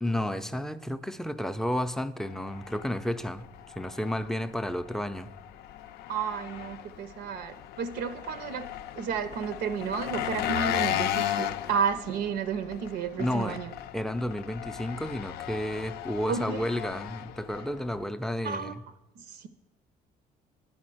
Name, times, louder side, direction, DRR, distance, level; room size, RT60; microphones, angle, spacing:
voice 1, 0.0-3.5 3.8-5.3 13.2-13.6 13.9-18.8, left 1 dB, 5° left, 0.4 m, -31 dB
Engine, 2.3-18.1, left 12 dB, 70° left, 0.4 m, -36 dB
voice 2, 6.1-8.7 9.0-13.7 16.3-16.6 18.4-18.7 19.2-19.5, right 6 dB, 75° right, 0.6 m, -32 dB
10.5 x 4.3 x 7.7 m
cardioid pair, 110°, 17 cm